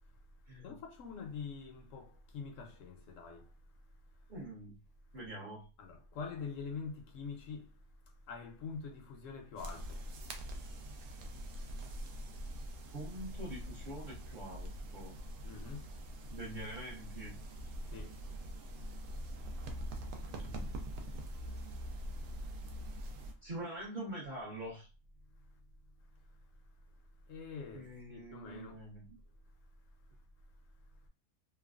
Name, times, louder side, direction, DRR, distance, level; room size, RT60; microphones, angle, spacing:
voice 1, 0.6-3.4 5.8-7.7 8.3-10.0 15.4-15.9 17.9-18.1 27.3-28.8, left 5 dB, 80° left, 1.0 m, -45 dB
voice 2, 4.3-4.8 5.1-5.6 12.9-15.2 16.3-17.4 20.3-20.8 23.4-24.9 27.7-29.0, right 1 dB, 45° right, 0.9 m, -45 dB
sound 1, 9.6-23.3, equal, 80° right, 1.0 m, -44 dB
3.0 x 2.2 x 2.3 m
omnidirectional pair, 1.3 m